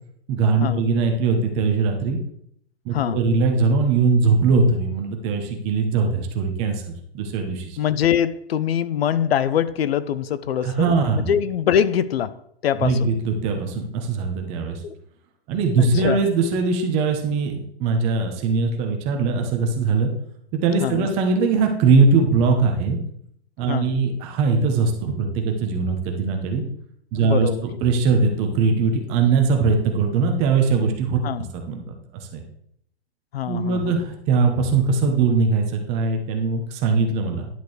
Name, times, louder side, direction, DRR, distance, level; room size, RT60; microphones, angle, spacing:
voice 1, 0.3-2.2 2.8-6.8 7.1-7.8 10.6-11.3 12.8-14.8 15.5-20.1 20.5-23.0 23.6-26.6 27.1-31.2 31.7-31.9 32.3-32.4 33.4-37.5, right 4 dB, 20° right, 0.9 m, -21 dB
voice 2, 7.8-12.4 12.6-13.1 14.8-15.0 15.8-16.2 20.8-21.1 23.7-23.9 27.1-27.7 31.2-31.5 33.3-34.0, left 9 dB, 65° left, 0.6 m, -23 dB
10.5 x 6.6 x 3.3 m
hypercardioid pair, 165°, 32 cm